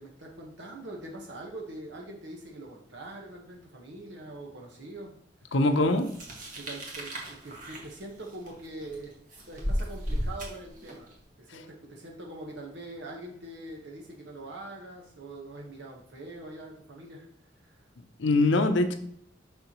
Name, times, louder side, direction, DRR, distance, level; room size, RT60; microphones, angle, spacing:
voice 1, 0.0-5.1 5.4-5.5 6.5-9.1 9.5-11.1 11.4-17.3 17.6-17.8, right 2 dB, 70° right, 1.2 m, -43 dB
voice 2, 5.5-6.1 11.5-11.6 18.2-19.0, left 2 dB, 85° left, 0.7 m, -23 dB
sound 1, 6.0-11.1, equal, 50° right, 1.8 m, -35 dB
6.7 x 5.7 x 3.0 m
head